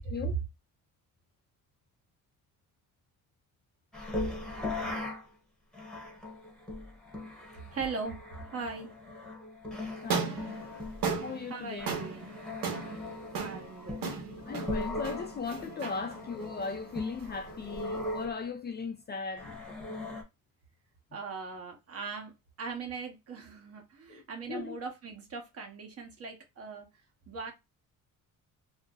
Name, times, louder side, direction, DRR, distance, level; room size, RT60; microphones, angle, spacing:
sound 1, 3.9-5.3 5.7-18.4 19.4-20.2, left 2 dB, ahead, 0.9 m, -39 dB
voice 1, 7.7-8.9 11.5-12.3 13.4-14.0 21.1-22.3 22.6-26.9 27.3-27.5, right 4 dB, 45° right, 1.0 m, -40 dB
voice 2, 10.0-10.7 11.2-12.0 14.0-14.1 14.5-19.6 24.1-24.2 24.5-24.8, left 5 dB, 30° left, 0.4 m, -38 dB
sound 2, 10.0-18.2, right 5 dB, 70° right, 1.0 m, -37 dB
2.6 x 2.0 x 3.6 m
cardioid pair, 135°, 35 cm